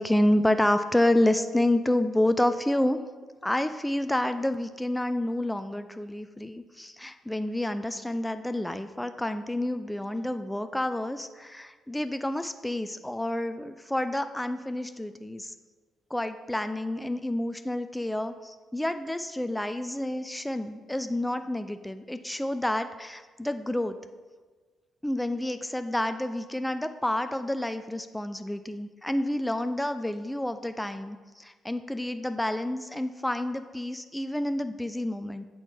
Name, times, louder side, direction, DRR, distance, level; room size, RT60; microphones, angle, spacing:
voice 1, 0.0-3.0 3.4-15.5 16.1-24.0 25.0-35.4, left 1 dB, 10° left, 10 dB, 0.4 m, -29 dB
8.0 x 4.2 x 3.4 m, 1.4 s
figure-of-eight pair, 40°, 0 cm